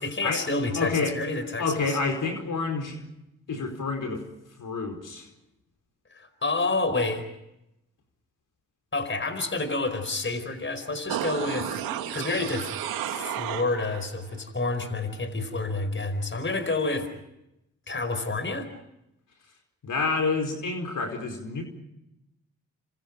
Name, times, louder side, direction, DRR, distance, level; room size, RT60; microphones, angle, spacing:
voice 1, 0.0-2.0 6.1-7.2 8.9-11.8 12.1-12.7 13.1-17.1 17.9-18.7, left 3 dB, 35° left, 10 dB, 4.9 m, -29 dB
voice 2, 0.7-1.2 1.6-3.0 3.5-4.2 4.6-5.3 19.8-21.6, left 4 dB, 60° left, 5 dB, 4.9 m, -28 dB
sound 1, 11.1-14.1 14.4-14.5, right 10 dB, 85° right, 2.1 m, -32 dB
28.0 x 27.0 x 5.4 m, 0.88 s
supercardioid pair, 50°, 35 cm